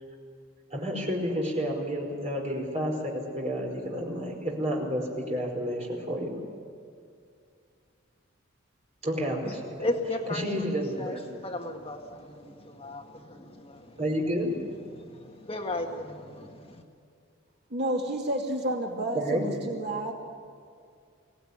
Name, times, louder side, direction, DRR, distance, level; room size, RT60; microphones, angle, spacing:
voice 1, 0.7-6.3 9.0-9.8 10.3-11.4 14.0-14.5 19.1-19.7, equal, 35° right, -1 dB, 5.0 m, -30 dB
voice 2, 9.8-14.0 14.9-16.8, left 1 dB, 25° left, 2 dB, 1.7 m, -35 dB
voice 3, 17.7-20.1, right 1 dB, 55° right, 0 dB, 2.6 m, -30 dB
23.0 x 17.5 x 9.9 m, 2.3 s
head